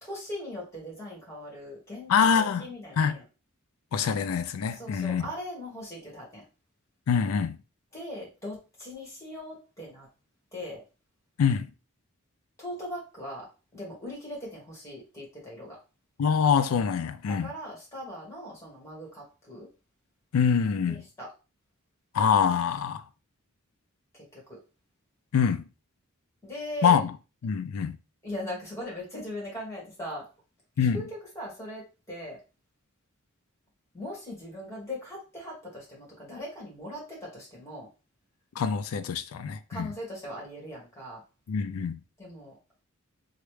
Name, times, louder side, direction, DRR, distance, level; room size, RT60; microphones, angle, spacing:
voice 1, 0.0-3.2 4.7-6.4 7.9-10.1 10.5-10.8 12.6-15.7 17.3-19.7 20.9-21.3 24.3-24.6 26.4-27.0 28.2-30.3 30.9-32.4 33.9-37.9 39.7-41.2 42.2-42.5, left 1 dB, 15° left, 1.4 m, -40 dB
voice 2, 2.1-2.7 3.0-3.2 3.9-5.3 7.1-7.6 11.4-11.7 16.2-17.5 20.3-21.0 22.1-23.0 25.3-25.7 26.8-27.1 27.4-28.0 30.8-31.0 38.6-39.9 41.5-42.0, left 6 dB, 80° left, 0.4 m, -25 dB
3.1 x 2.4 x 3.1 m
head